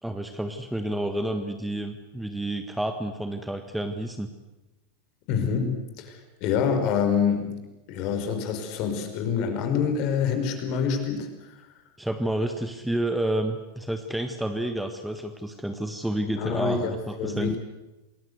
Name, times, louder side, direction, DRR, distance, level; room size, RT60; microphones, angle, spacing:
voice 1, 0.0-4.3 12.0-17.6, right 1 dB, 5° right, 7 dB, 1.7 m, -30 dB
voice 2, 5.3-7.6 7.9-11.6 16.4-17.6, left 6 dB, 40° left, 6 dB, 5.2 m, -26 dB
28.0 x 20.5 x 8.2 m, 1.0 s
figure-of-eight pair, 90°, 0 cm